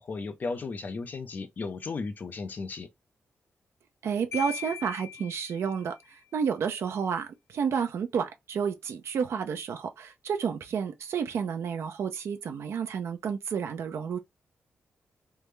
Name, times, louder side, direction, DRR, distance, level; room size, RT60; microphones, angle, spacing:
voice 1, 0.0-2.9, left 4 dB, 40° left, 0.5 m, -35 dB
voice 2, 4.0-14.2, right 7 dB, 70° right, 0.5 m, -31 dB
Marimba xylophone, 4.3-6.0, left 11 dB, 70° left, 0.8 m, -41 dB
3.4 x 2.0 x 3.2 m
wide cardioid pair, 155°, 5 cm